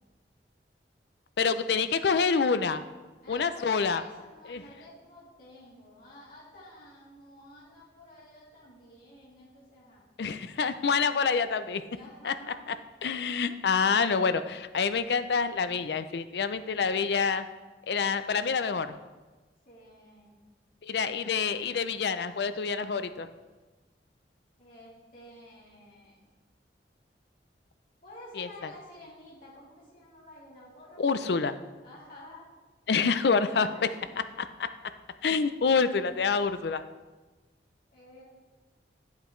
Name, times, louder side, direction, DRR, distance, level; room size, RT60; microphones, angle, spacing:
voice 1, 1.4-2.8 3.3-4.0 4.5-4.6 10.2-11.8 12.2-12.3 12.7-12.8 13.0-17.5 17.9-19.0 20.8-23.3 28.4-28.5 31.0-31.5 32.9-33.7 34.4-34.7 35.2-36.8, left 5 dB, 70° left, 11 dB, 0.5 m, -27 dB
voice 2, 3.2-10.0 11.9-12.7 19.6-20.4 24.6-26.2 28.0-31.4 31.8-32.5 33.5-34.1 37.9-38.2, left 1 dB, 55° left, -8 dB, 2.9 m, -50 dB
9.8 x 8.2 x 3.1 m, 1.2 s
head